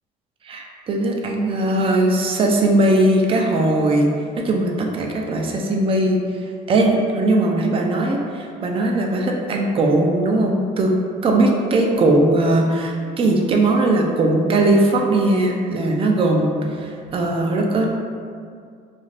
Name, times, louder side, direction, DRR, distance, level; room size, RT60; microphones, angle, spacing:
voice 1, 0.5-6.2 6.7-10.9 11.2-16.5 16.8-17.9, right 2 dB, 35° right, 0 dB, 0.4 m, -19 dB
2.5 x 2.4 x 3.2 m, 2.2 s
cardioid pair, 110°, 17 cm